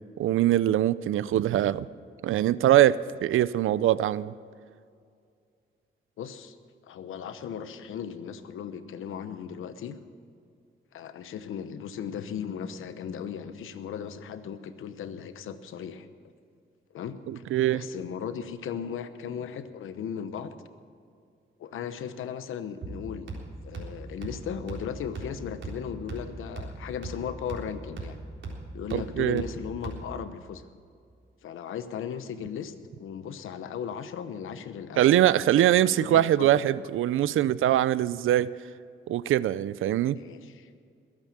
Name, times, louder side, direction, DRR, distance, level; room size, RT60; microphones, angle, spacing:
voice 1, 0.2-1.9 2.2-4.3 17.3-17.8 28.9-29.4 35.0-38.5 39.1-40.2, right 12 dB, 85° right, 0.5 m, -23 dB
voice 2, 6.2-6.6 6.8-9.9 10.9-16.1 16.9-17.4 17.7-20.5 21.6-23.3 23.6-28.2 28.7-30.6 31.4-32.7 33.0-35.1 35.8-36.5 40.2-40.7, left 8 dB, 90° left, 1.0 m, -37 dB
sound 1, 22.8-30.3, right 2 dB, 70° right, 3.8 m, -40 dB
21.5 x 8.9 x 7.4 m
cardioid pair, 70°, 20 cm